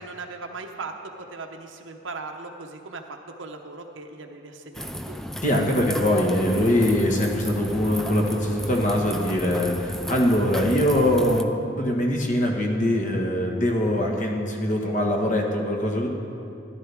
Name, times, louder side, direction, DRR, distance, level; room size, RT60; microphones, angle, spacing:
voice 1, 0.0-3.0 3.4-5.2, right 3 dB, 85° right, 3 dB, 0.8 m, -38 dB
sound 1, 4.7-11.4, equal, ahead, 0.4 m, -33 dB
voice 2, 5.4-11.5 11.8-16.1, left 1 dB, 40° left, 1 dB, 1.4 m, -22 dB
14.0 x 12.0 x 3.5 m, 2.6 s
head